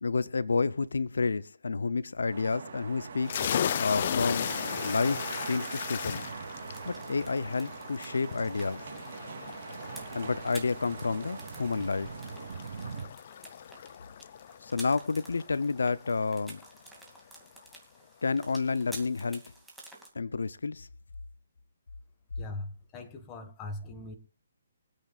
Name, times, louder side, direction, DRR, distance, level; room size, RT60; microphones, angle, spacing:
voice 1, 0.0-3.3 3.8-4.5 4.8-6.3 6.8-8.8 10.1-12.1 14.6-16.6 18.2-19.4 20.1-20.9, left 4 dB, 85° left, 0.6 m, -30 dB
sound 1, 2.3-13.1, right 5 dB, 55° right, 2.9 m, -41 dB
sound 2, 3.2-16.6, left 9 dB, 45° left, 0.5 m, -37 dB
sound 3, 6.6-20.1, right 1 dB, 5° right, 2.4 m, -51 dB
voice 2, 22.4-24.2, left 2 dB, 20° left, 1.7 m, -40 dB
25.0 x 8.4 x 2.4 m
hypercardioid pair, 155°, 0 cm